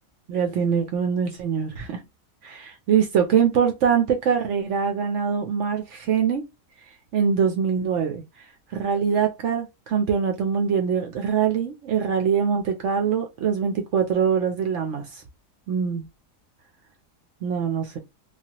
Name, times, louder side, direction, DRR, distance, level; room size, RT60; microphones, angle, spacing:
voice 1, 0.3-2.0 2.4-6.4 7.1-8.2 8.7-15.2 15.7-16.1 17.4-18.0, right 7 dB, 70° right, 0.7 m, -23 dB
3.2 x 2.3 x 2.8 m
omnidirectional pair, 1.7 m